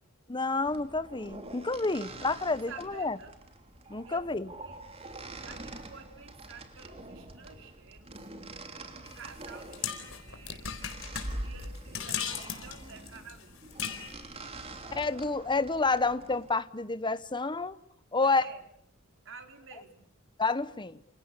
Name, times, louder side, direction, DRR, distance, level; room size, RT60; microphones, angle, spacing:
voice 1, 0.3-3.2 3.9-4.5 14.9-17.8 18.1-18.5 20.4-21.0, left 3 dB, 25° left, 1.1 m, -29 dB
sound 1, 0.7-16.5, right 1 dB, 30° right, 3.3 m, -45 dB
voice 2, 2.1-3.3 4.0-4.8 5.4-8.1 8.7-10.8 11.4-13.6 18.2-18.6 19.2-20.1, right 5 dB, 65° right, 4.3 m, -50 dB
sound 2, 9.0-14.1, left 8 dB, 70° left, 4.4 m, -38 dB
28.5 x 28.5 x 6.9 m
head